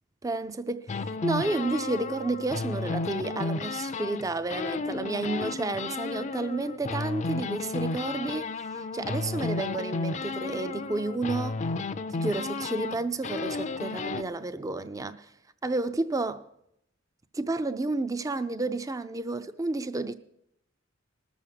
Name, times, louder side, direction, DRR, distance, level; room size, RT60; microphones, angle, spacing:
voice 1, 0.2-0.8 1.2-11.6 12.1-15.3 15.6-16.5 17.3-20.1, right 2 dB, 15° right, 0.4 m, -31 dB
sound 1, 0.9-4.2 4.5-14.2, left 3 dB, 35° left, 0.5 m, -33 dB
19.5 x 7.1 x 6.6 m
head